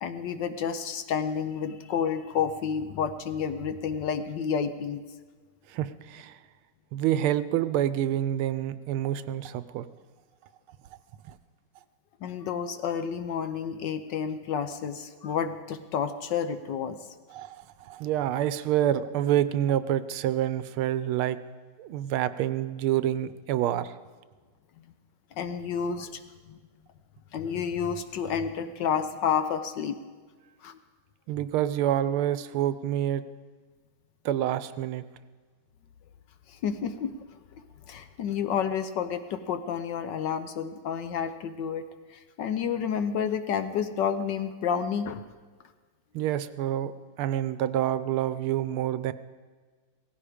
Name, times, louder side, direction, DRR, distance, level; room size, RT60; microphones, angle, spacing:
voice 1, 0.0-5.0 12.2-17.0 25.4-26.2 26.5-26.6 27.3-30.0 30.6-30.8 36.5-37.1 37.9-45.2, left 7 dB, 65° left, 10 dB, 1.2 m, -30 dB
voice 2, 5.7-6.4 6.9-9.8 11.3-11.4 17.3-21.4 21.8-23.9 31.3-33.2 34.2-35.0 46.1-46.9 47.2-49.1, right 11 dB, 85° right, 14 dB, 1.5 m, -27 dB
17.5 x 15.5 x 5.0 m, 1.4 s
omnidirectional pair, 2.3 m